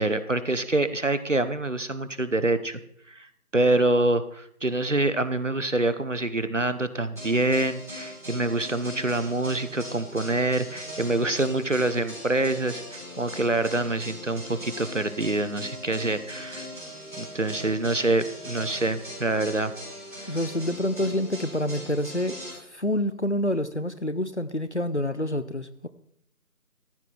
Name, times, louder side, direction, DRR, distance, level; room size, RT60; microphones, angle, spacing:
voice 1, 0.0-2.8 3.1-16.7 17.2-19.7 20.1-20.4, right 2 dB, 55° right, 12 dB, 1.0 m, -26 dB
sound 1, 7.2-22.5, equal, 10° right, 5.8 m, -40 dB
voice 2, 20.3-22.4 22.7-25.9, left 1 dB, 50° left, 13 dB, 0.7 m, -27 dB
14.5 x 9.8 x 4.4 m, 0.70 s
figure-of-eight pair, 180°, 46 cm